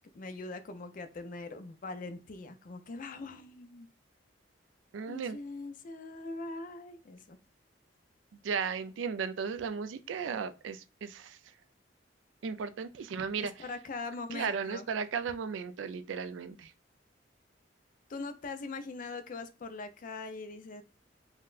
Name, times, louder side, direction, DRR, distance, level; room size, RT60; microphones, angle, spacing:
voice 1, 0.1-3.9 5.1-7.4 13.4-14.9 18.1-20.8, left 3 dB, 45° left, 0.4 m, -42 dB
voice 2, 4.9-5.4 8.4-11.4 12.4-13.6 14.3-16.7, right 6 dB, 85° right, 0.4 m, -35 dB
3.8 x 2.2 x 2.4 m
head